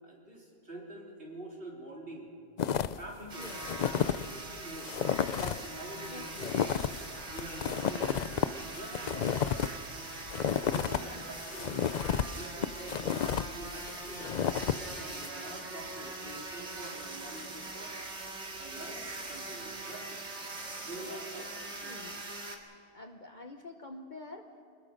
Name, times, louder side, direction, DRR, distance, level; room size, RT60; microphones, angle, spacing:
voice 1, 0.0-2.3 3.0-4.9 5.4-7.0 7.3-9.6 10.7-18.0 18.6-20.2 20.8-21.5, right 1 dB, 50° right, -2 dB, 3.8 m, -46 dB
sound 1, 2.6-3.1 3.4-4.3 4.6-4.7 4.8-5.6 6.0-11.0 11.4-15.3, left 8 dB, 55° left, 0.5 m, -32 dB
voice 2, 3.2-3.7 6.0-6.5 10.7-11.4 21.0-22.2 22.9-24.6, left 2 dB, 40° left, 4 dB, 1.1 m, -48 dB
sound 2, 3.3-22.6, right 2 dB, 65° right, 2.3 m, -42 dB
25.0 x 20.5 x 5.2 m, 2.6 s
omnidirectional pair, 1.3 m